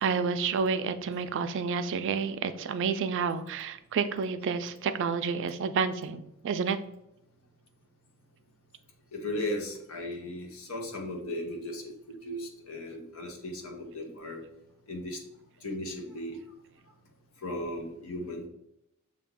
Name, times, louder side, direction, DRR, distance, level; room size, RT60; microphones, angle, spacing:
voice 1, 0.0-6.8, right 5 dB, 60° right, 10 dB, 0.4 m, -30 dB
voice 2, 9.1-11.9 12.2-14.4 14.9-15.2 15.6-16.4 17.4-18.5, left 1 dB, 70° left, 1 dB, 0.8 m, -36 dB
6.5 x 2.3 x 3.5 m, 0.83 s
head